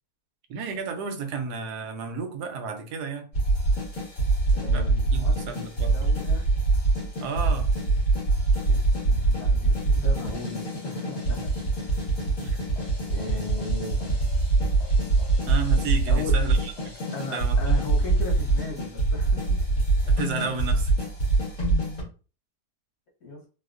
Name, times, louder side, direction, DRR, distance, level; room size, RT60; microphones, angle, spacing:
voice 1, 0.5-3.3 4.7-4.9 5.1-6.1 7.2-7.7 12.4-12.6 15.5-16.7 17.3-17.8 20.0-21.1, right 5 dB, 90° right, 1.2 m, -32 dB
sound 1, 3.3-22.0, right 3 dB, 55° left, 2.1 m, -24 dB
voice 2, 4.5-5.4 5.9-6.5 8.7-12.0 13.1-14.0 16.1-16.4 17.1-19.6 23.2-23.5, left 2 dB, 75° left, 1.8 m, -37 dB
4.1 x 2.3 x 2.4 m
omnidirectional pair, 1.7 m